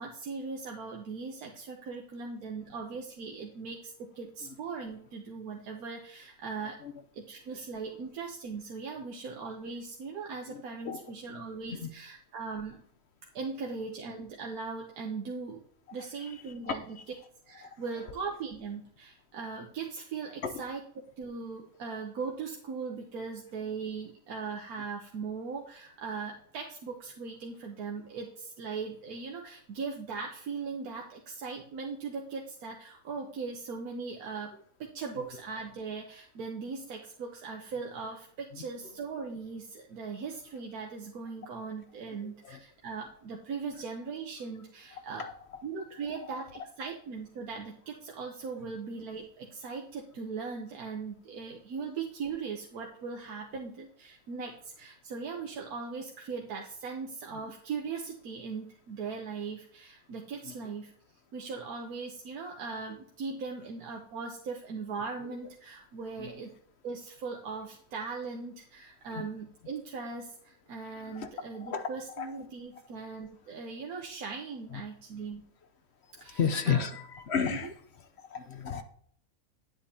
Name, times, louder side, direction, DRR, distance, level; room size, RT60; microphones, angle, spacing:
voice 1, 0.0-6.8 7.1-12.8 13.3-15.6 15.9-17.0 17.5-20.8 21.2-34.5 34.8-45.3 45.6-60.9 61.3-66.5 66.8-75.5 76.2-76.4 76.7-76.9 77.5-77.7, right 5 dB, 85° right, 0 dB, 1.4 m, -39 dB
voice 2, 10.5-11.0 11.7-11.9 16.0-16.3 16.7-17.0 17.6-17.7 20.4-20.5 23.2-23.3 38.5-38.6 42.2-42.6 44.9-45.3 48.6-48.8 57.3-57.4 60.4-60.5 65.2-65.4 66.2-66.4 69.1-69.3 70.9-71.3 71.6-71.9 72.2-72.3 74.7-74.8 76.3-77.7 78.2-78.8, left 7 dB, 55° left, 8 dB, 0.8 m, -34 dB
10.0 x 7.9 x 2.8 m, 0.64 s
omnidirectional pair, 1.5 m